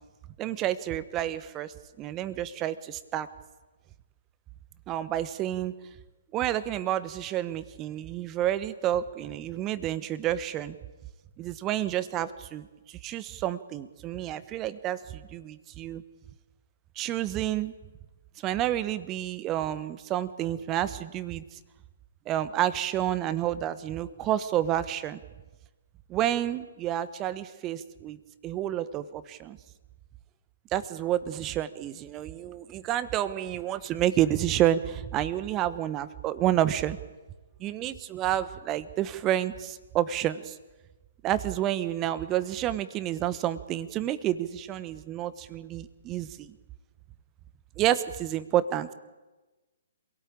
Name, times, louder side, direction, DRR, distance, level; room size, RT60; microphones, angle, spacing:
voice 1, 0.4-3.3 4.9-5.7 6.3-10.8 11.4-16.0 16.9-17.7 18.4-21.6 22.3-25.2 26.1-28.2 28.4-29.6 30.7-37.0 37.6-40.6 41.2-46.5 47.8-48.9, right 12 dB, 25° right, 15 dB, 1.2 m, -29 dB
26.5 x 17.5 x 8.8 m, 1.2 s
figure-of-eight pair, 125°, 0 cm